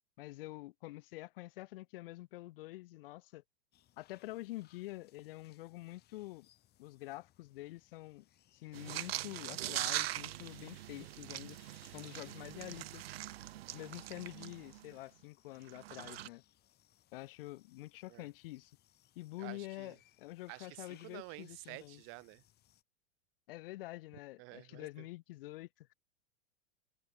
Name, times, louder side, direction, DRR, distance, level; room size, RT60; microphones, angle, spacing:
voice 1, 0.2-3.4 4.0-6.5 6.8-8.3 8.5-11.6 11.9-13.1 13.7-16.4 17.1-18.7 19.2-22.0 23.5-25.9, left 18 dB, 70° left, 0.8 m, -47 dB
sound 1, 3.7-22.8, left 13 dB, 35° left, 6.8 m, -69 dB
sound 2, 8.7-14.9 15.6-16.3, right 14 dB, 80° right, 1.1 m, -42 dB
voice 2, 19.4-20.0 20.5-22.4 24.4-25.1, right 28 dB, 45° right, 1.2 m, -50 dB
supercardioid pair, 135°, 30 cm